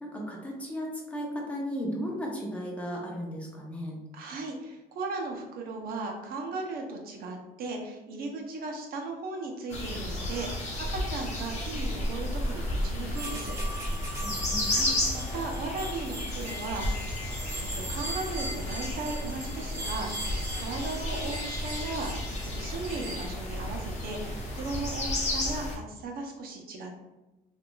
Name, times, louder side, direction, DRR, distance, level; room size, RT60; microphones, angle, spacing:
voice 1, 0.0-4.0 14.2-14.8, equal, 10° left, -2 dB, 0.7 m, -35 dB
voice 2, 4.1-13.6 14.7-17.3 17.6-22.1 22.5-27.0, right 3 dB, 60° right, 1 dB, 0.7 m, -37 dB
sound 1, 9.7-25.8, left 1 dB, 45° left, 0.8 m, -33 dB
sound 2, 13.1-23.3, right 1 dB, 15° right, 1.0 m, -40 dB
3.5 x 2.5 x 2.3 m, 1.0 s
cardioid pair, 110°, 17 cm